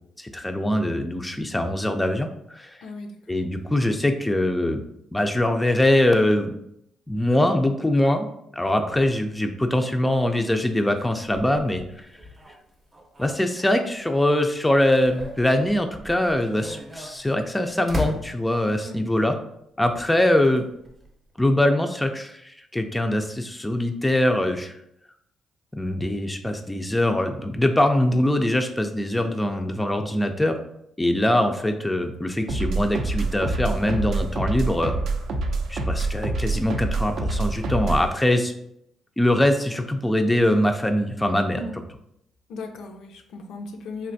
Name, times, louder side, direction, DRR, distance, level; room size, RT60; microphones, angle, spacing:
voice 1, 0.2-2.8 3.3-4.8 5.1-6.5 7.1-12.1 13.2-19.4 19.8-20.6 21.4-24.8 25.8-30.6 31.0-35.0 35.7-38.5 39.2-41.6, left 1 dB, 10° left, 5 dB, 0.3 m, -23 dB
voice 2, 2.8-3.4 18.8-19.0 41.5-41.8 42.5-44.1, left 2 dB, 80° left, 4 dB, 0.4 m, -37 dB
sound 1, 8.9-14.2 14.6-18.8 19.8-21.3, left 1 dB, 25° right, 0.7 m, -38 dB
sound 2, 32.5-38.1, right 3 dB, 70° right, 0.3 m, -26 dB
3.2 x 2.5 x 2.6 m, 0.76 s
cardioid pair, 90°, 0 cm